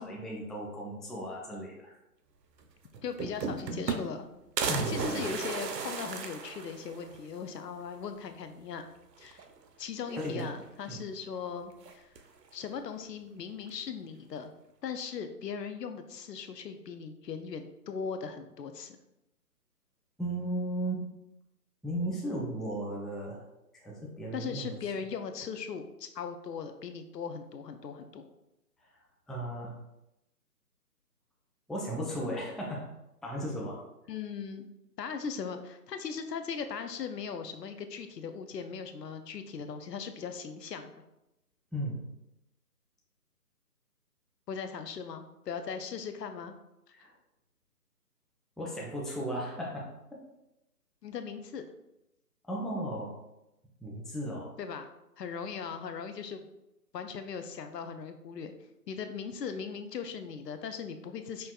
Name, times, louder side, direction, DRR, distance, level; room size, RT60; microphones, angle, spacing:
voice 1, 0.0-2.0 4.7-5.2 10.2-10.4 10.9-11.0 20.2-21.1 21.8-23.5 23.7-24.8 29.3-29.8 31.7-32.9 33.2-33.8 41.7-42.0 46.9-47.1 48.6-49.9 52.5-53.1 53.8-54.5, right 1 dB, ahead, -3 dB, 0.3 m, -35 dB
sound 1, 2.6-2.7 2.9-4.2 4.6-7.2 7.6-7.7 7.9-8.0 9.2-9.7 10.0-10.8 11.8-12.4, right 5 dB, 85° right, 0.6 m, -35 dB
voice 2, 3.0-4.3 4.8-8.9 9.2-9.5 9.8-12.2 12.5-14.5 14.8-19.0 24.3-28.3 34.1-34.7 35.0-41.0 44.5-46.6 51.0-51.6 54.6-54.9 55.2-56.5 56.9-58.5 58.9-61.5, left 6 dB, 80° left, 8 dB, 0.6 m, -39 dB
5.2 x 2.2 x 2.3 m, 0.91 s
figure-of-eight pair, 165°, 48 cm